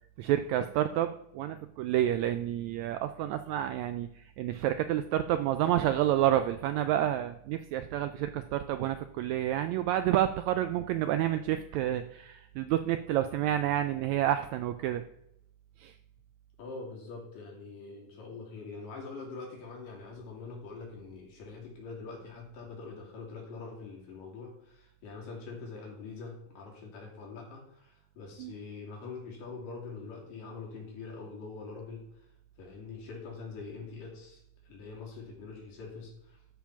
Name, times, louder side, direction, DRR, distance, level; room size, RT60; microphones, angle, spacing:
voice 1, 0.2-15.0 15.8-15.9 28.4-28.5, right 12 dB, 85° right, 10 dB, 1.6 m, -29 dB
voice 2, 16.6-32.3 32.6-36.4, left 4 dB, 90° left, -2 dB, 4.3 m, -44 dB
13.0 x 4.6 x 5.9 m, 0.76 s
omnidirectional pair, 3.7 m